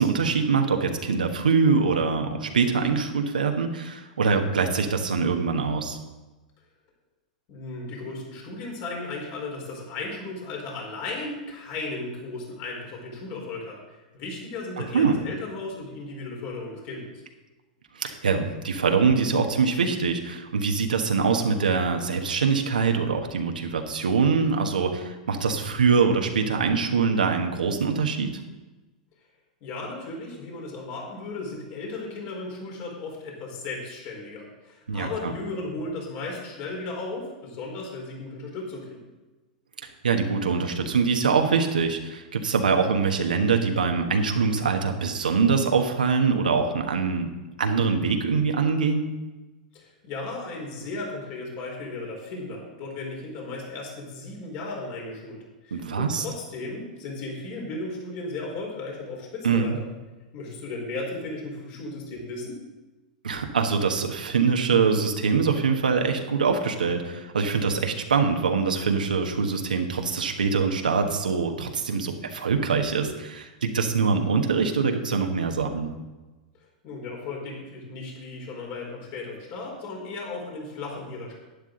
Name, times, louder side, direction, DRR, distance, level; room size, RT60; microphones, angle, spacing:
voice 1, 0.0-6.0 14.8-15.2 17.9-28.4 34.9-35.3 40.0-47.3 47.6-49.1 55.7-56.2 59.4-59.8 63.2-75.9, right 5 dB, 90° right, 4 dB, 1.3 m, -24 dB
voice 2, 7.5-17.1 29.6-39.1 49.7-59.8 60.3-62.6 76.8-81.3, left 3 dB, 50° left, -1 dB, 4.2 m, -35 dB
11.5 x 10.0 x 3.9 m, 1.1 s
hypercardioid pair, 110°, 4 cm